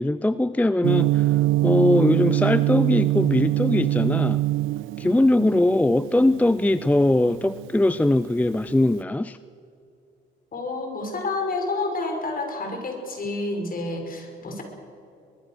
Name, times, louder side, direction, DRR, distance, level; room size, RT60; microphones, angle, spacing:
voice 1, 0.0-4.4 5.0-9.4, left 1 dB, 5° left, 14 dB, 0.5 m, -21 dB
Gong, 0.8-8.9, right 16 dB, 85° right, 0.5 m, -24 dB
voice 2, 10.5-14.6, left 2 dB, 45° left, 4 dB, 5.5 m, -29 dB
23.5 x 20.5 x 6.6 m, 2.5 s
cardioid pair, 90°, 20 cm